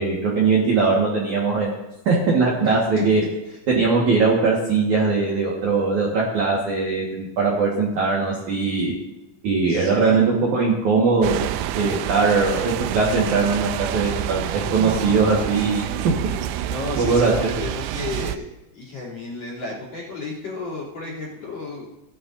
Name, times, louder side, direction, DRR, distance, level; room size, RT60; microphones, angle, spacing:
voice 1, 0.0-3.2 3.7-8.9 9.4-11.4 11.7-16.1 17.0-17.5, right 4 dB, 55° right, -4 dB, 2.2 m, -20 dB
voice 2, 2.6-3.0 9.7-10.3 11.8-12.2 16.6-18.5 18.7-21.9, left 3 dB, 40° left, -5 dB, 3.9 m, -33 dB
sound 1, 11.2-18.4, right 12 dB, 85° right, 2.8 m, -28 dB
17.5 x 11.0 x 2.7 m, 0.99 s
omnidirectional pair, 5.6 m